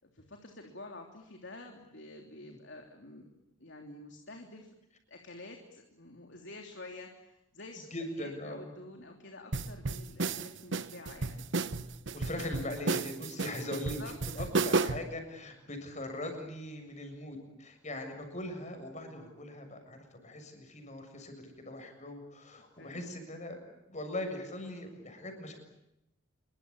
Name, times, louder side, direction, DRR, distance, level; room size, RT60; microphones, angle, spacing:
voice 1, 0.1-3.3 3.6-4.7 5.1-7.9 8.2-11.4 12.3-12.6 14.0-14.5 22.7-23.1, left 2 dB, 60° left, 3 dB, 3.3 m, -49 dB
voice 2, 7.9-8.7 12.1-14.0 14.3-25.6, left 1 dB, 35° left, 5 dB, 7.3 m, -41 dB
sound 1, 9.5-15.1, right 3 dB, 60° right, 1.1 m, -32 dB
27.5 x 23.5 x 8.6 m, 0.85 s
head